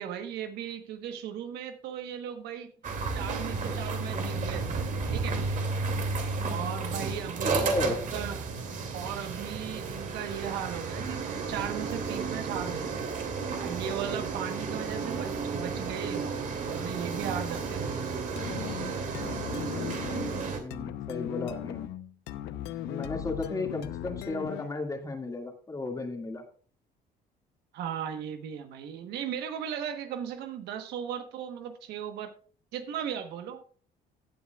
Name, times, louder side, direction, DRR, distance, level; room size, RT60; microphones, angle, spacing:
voice 1, 0.0-2.7 3.1-4.8 5.1-5.4 6.5-8.4 8.9-12.9 13.6-16.4 16.7-18.0 27.7-32.3 32.7-33.6, right 9 dB, 80° right, 7 dB, 1.2 m, -37 dB
sound 1, 2.8-20.6, right 4 dB, 50° right, 2.5 m, -32 dB
voice 2, 7.4-8.0 20.6-21.8 22.8-26.4, left 2 dB, 20° left, 3 dB, 2.1 m, -34 dB
sound 2, 18.4-24.8, left 12 dB, 90° left, 0.8 m, -38 dB
16.0 x 8.3 x 2.4 m, 0.43 s
cardioid pair, 110°, 17 cm